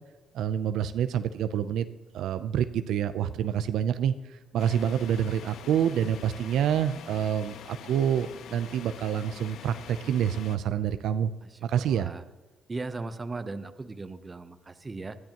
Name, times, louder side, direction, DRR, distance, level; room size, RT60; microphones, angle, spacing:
voice 1, 0.3-1.9 2.1-11.3 11.6-12.1, right 9 dB, 80° right, 11 dB, 0.6 m, -27 dB
sound 1, 4.6-10.6, left 9 dB, 75° left, 0.5 m, -45 dB
voice 2, 11.4-12.2 12.7-15.2, right 3 dB, 25° right, 11 dB, 0.8 m, -38 dB
20.5 x 13.0 x 3.0 m, 1.2 s
cardioid pair, 90°, 0 cm